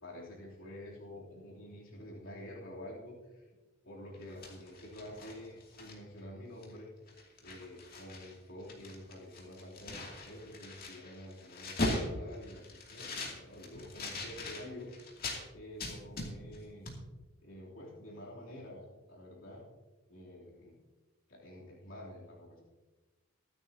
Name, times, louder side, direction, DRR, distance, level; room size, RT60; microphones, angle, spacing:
voice 1, 0.0-3.5 3.8-6.9 7.4-14.9 15.5-16.9 17.4-19.6 20.1-20.8 21.3-22.6, left 1 dB, 65° left, -5 dB, 3.2 m, -48 dB
sound 1, 4.1-6.2 6.6-6.8 7.1-8.3 8.6-15.4 15.8-16.6 16.9-17.0, left 2 dB, 45° left, 2.6 m, -40 dB
23.5 x 9.1 x 2.9 m, 1.2 s
head